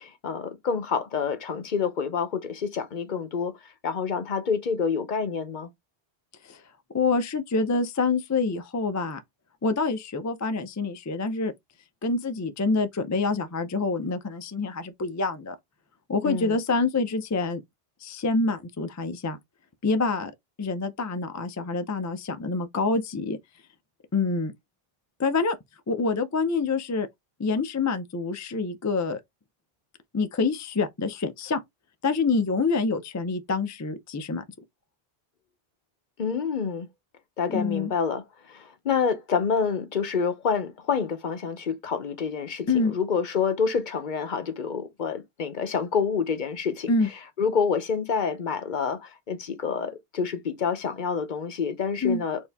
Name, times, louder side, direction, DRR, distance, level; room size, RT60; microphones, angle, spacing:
voice 1, 0.0-5.7 16.2-16.6 36.2-36.9 37.4-46.9 47.4-52.4, left 6 dB, 55° left, 0.8 m, -28 dB
voice 2, 6.9-9.2 9.6-11.5 12.0-15.6 16.1-17.6 18.0-19.4 19.8-20.3 20.6-23.4 24.1-24.5 25.2-25.6 25.9-27.1 27.4-29.2 30.1-31.6 32.0-34.4 37.5-37.9 42.7-42.9 46.9-47.1 52.0-52.2, left 3 dB, 30° left, 0.3 m, -26 dB
4.5 x 2.7 x 3.4 m
omnidirectional pair, 1.0 m